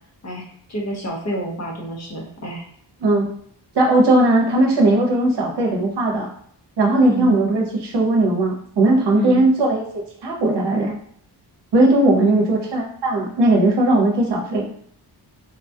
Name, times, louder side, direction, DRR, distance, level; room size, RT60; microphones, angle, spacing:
voice 1, 0.2-2.6 7.1-7.4 9.1-9.4 12.1-12.4, right 1 dB, 40° left, 0 dB, 0.7 m, -28 dB
voice 2, 3.7-6.3 6.8-9.8 10.2-11.0 11.7-14.7, right 2 dB, 75° right, -1 dB, 0.7 m, -18 dB
3.9 x 2.2 x 2.6 m, 0.63 s
wide cardioid pair, 155°, 41 cm